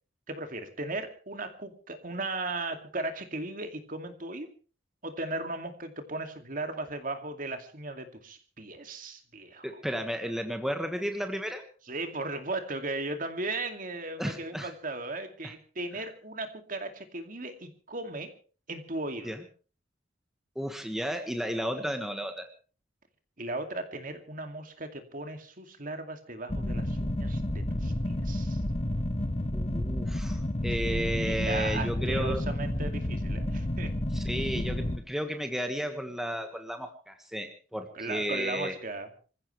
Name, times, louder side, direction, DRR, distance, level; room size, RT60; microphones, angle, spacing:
voice 1, 0.3-4.5 5.0-9.7 11.9-18.3 18.7-19.3 23.4-28.6 30.8-30.9 31.3-33.9 37.9-39.1, right 2 dB, 45° right, 6 dB, 2.4 m, -37 dB
voice 2, 9.6-11.7 14.2-14.7 19.2-19.4 20.5-22.5 29.5-32.4 34.1-38.7, equal, ahead, 5 dB, 1.5 m, -33 dB
sound 1, 26.5-35.0, left 1 dB, 35° left, 1.3 m, -30 dB
26.5 x 15.5 x 3.3 m, 0.37 s
head